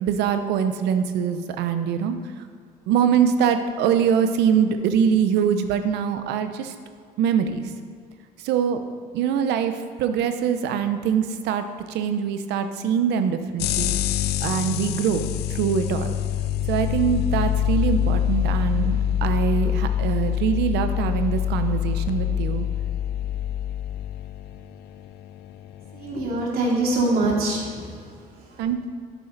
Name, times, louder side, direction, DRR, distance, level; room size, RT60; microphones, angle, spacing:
voice 1, 0.0-2.5 2.9-6.7 7.2-7.6 8.4-8.8 9.1-13.9 14.4-16.1 16.7-22.7 28.6-28.8, right 7 dB, 85° right, 8 dB, 0.8 m, -23 dB
sound 1, 13.6-26.5, left 10 dB, 75° left, 0.5 m, -25 dB
voice 2, 25.9-28.6, right 2 dB, 60° right, -3 dB, 3.1 m, -25 dB
11.0 x 9.2 x 4.0 m, 2.1 s
cardioid pair, 110°, 17 cm